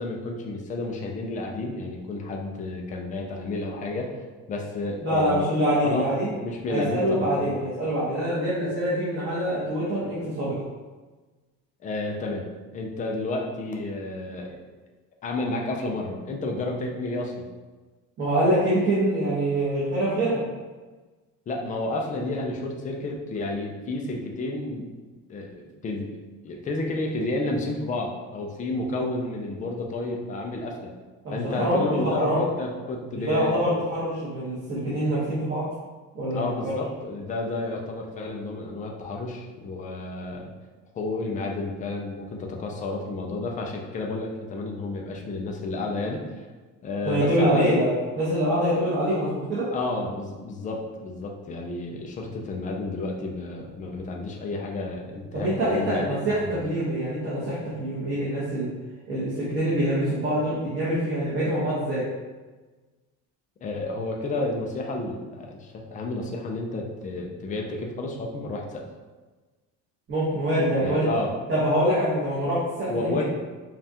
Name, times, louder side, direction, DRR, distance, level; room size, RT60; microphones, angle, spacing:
voice 1, 0.0-4.1 4.5-5.5 5.8-6.1 6.4-7.6 11.8-12.5 12.7-14.6 15.2-17.5 21.5-24.9 25.3-26.1 26.4-30.9 31.3-33.5 36.3-40.5 40.9-46.2 46.8-47.6 49.7-56.1 56.4-56.7 63.6-68.9 70.8-71.3 72.9-73.2, left 2 dB, 25° left, 1 dB, 0.4 m, -31 dB
voice 2, 5.0-6.3 6.7-10.5 18.2-20.4 31.2-32.5 33.1-35.6 36.1-36.7 47.0-47.9 48.1-49.7 55.3-58.7 59.1-62.0 70.1-71.1 71.5-73.2, right 1 dB, 35° right, -10 dB, 1.1 m, -25 dB
5.3 x 2.4 x 2.8 m, 1.3 s
cardioid pair, 175°, 33 cm